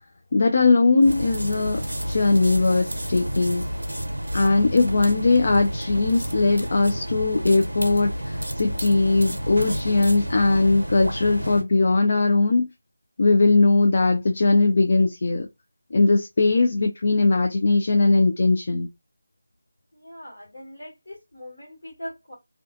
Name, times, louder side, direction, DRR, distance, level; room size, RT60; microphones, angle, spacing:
voice 1, 0.3-3.6 4.3-12.7 13.2-15.5 15.9-18.9, left 3 dB, 45° left, 0.4 m, -20 dB
sound 1, 1.0-11.6, equal, 85° right, 0.6 m, -30 dB
voice 2, 4.1-4.5 19.9-22.3, equal, 60° left, 1.3 m, -41 dB
2.4 x 2.3 x 2.4 m
figure-of-eight pair, 165°, 0 cm